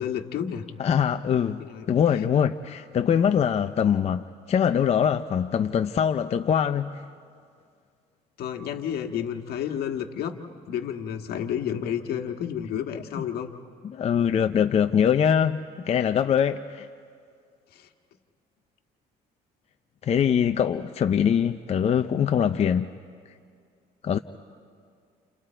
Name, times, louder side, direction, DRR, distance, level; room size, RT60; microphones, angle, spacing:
voice 1, 0.0-0.6 1.6-1.9 8.4-10.4 10.7-13.5 17.7-17.9, left 9 dB, 70° left, 1.6 m, -31 dB
voice 2, 0.8-7.0 13.8-15.6 15.9-16.9 20.0-22.9 24.0-24.2, left 8 dB, 40° left, 0.6 m, -23 dB
30.0 x 29.5 x 4.5 m
cardioid pair, 110°, 17 cm